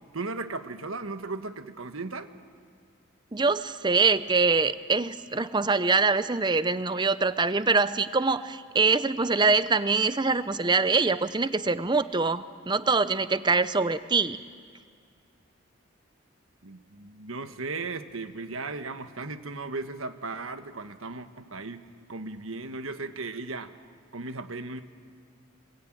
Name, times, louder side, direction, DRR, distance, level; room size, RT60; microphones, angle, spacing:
voice 1, 0.1-2.3 16.6-23.7 24.1-24.8, right 3 dB, 90° right, 9 dB, 1.4 m, -36 dB
voice 2, 3.3-14.4, right 4 dB, 20° right, 14 dB, 0.7 m, -24 dB
26.0 x 23.0 x 9.1 m, 2.1 s
head